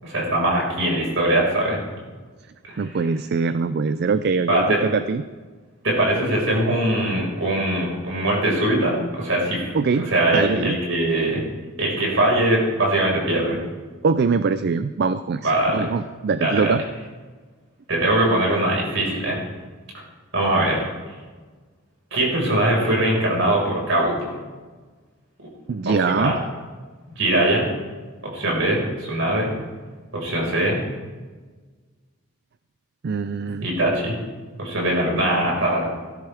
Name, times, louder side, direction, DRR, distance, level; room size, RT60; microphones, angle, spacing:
voice 1, 0.0-1.8 2.7-2.8 4.5-4.8 5.8-11.4 11.8-13.6 15.4-15.9 16.4-16.7 17.9-19.4 20.3-20.8 22.1-24.4 26.1-26.4 27.2-27.7 28.2-29.5 30.1-30.8 33.6-34.1 34.6-35.9, right 1 dB, 65° right, -2 dB, 5.1 m, -21 dB
voice 2, 2.8-5.2 9.7-10.8 14.0-16.8 25.7-26.4 33.0-33.7, right 4 dB, 50° right, 12 dB, 0.4 m, -23 dB
18.0 x 13.0 x 3.5 m, 1.4 s
head